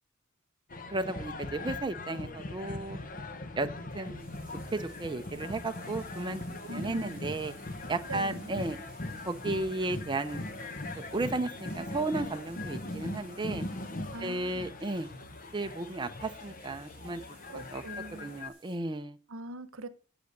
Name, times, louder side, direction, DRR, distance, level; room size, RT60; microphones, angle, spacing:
sound 1, 0.7-18.5, left 2 dB, 45° left, 1.1 m, -40 dB
voice 1, 0.9-3.0 3.5-3.7 3.9-4.2 4.7-6.4 6.7-7.5 7.9-8.8 9.3-10.4 10.9-13.7 14.2-15.1 15.5-17.2 17.7-17.8 18.2-19.2, right 2 dB, 20° right, 0.6 m, -34 dB
sound 2, 3.7-18.8, right 2 dB, 5° right, 4.6 m, -59 dB
voice 2, 6.7-7.2 8.1-8.5 14.1-14.7 17.5-18.3 19.3-19.9, right 2 dB, 75° right, 1.0 m, -42 dB
8.1 x 7.9 x 6.5 m
head